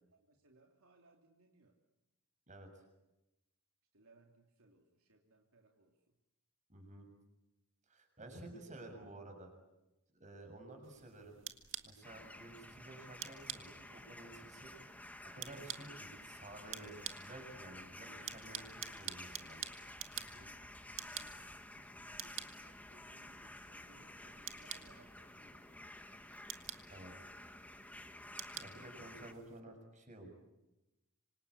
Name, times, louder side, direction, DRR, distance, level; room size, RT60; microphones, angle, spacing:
voice 1, 0.1-1.7 3.9-6.0 8.2-8.7 19.8-26.2, right 2 dB, 75° right, 1 dB, 3.1 m, -67 dB
voice 2, 2.5-2.8 6.7-7.1 7.9-9.5 10.2-11.4 11.8-14.7 15.2-19.6 26.9-27.3 28.6-30.3, right 2 dB, 35° right, 4 dB, 6.9 m, -52 dB
sound 1, 10.8-29.6, right 10 dB, 60° right, 1.9 m, -50 dB
sound 2, 12.0-29.3, left 1 dB, 5° left, 1.4 m, -52 dB
26.5 x 26.0 x 8.5 m, 0.99 s
head